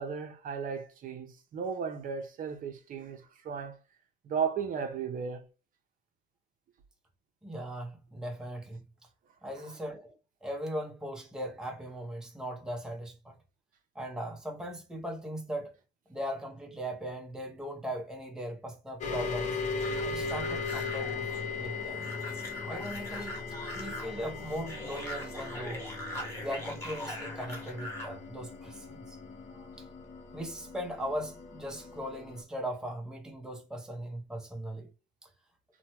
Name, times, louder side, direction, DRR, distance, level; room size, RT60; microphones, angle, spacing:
voice 1, 0.0-3.8 4.2-5.5 29.6-29.7, right 6 dB, 55° right, 0.6 m, -35 dB
voice 2, 7.4-8.8 9.4-10.1 10.4-13.4 13.9-15.7 16.1-19.6 20.0-22.1 22.7-25.8 26.4-29.2 29.8-29.9 30.3-34.9 35.2-35.3, equal, 5° right, 0.7 m, -39 dB
sound 1, 19.0-32.4, left 4 dB, 45° left, 0.6 m, -38 dB
sound 2, 19.8-28.2, left 1 dB, 15° left, 1.2 m, -42 dB
2.9 x 2.1 x 2.9 m
cardioid pair, 110°, 17 cm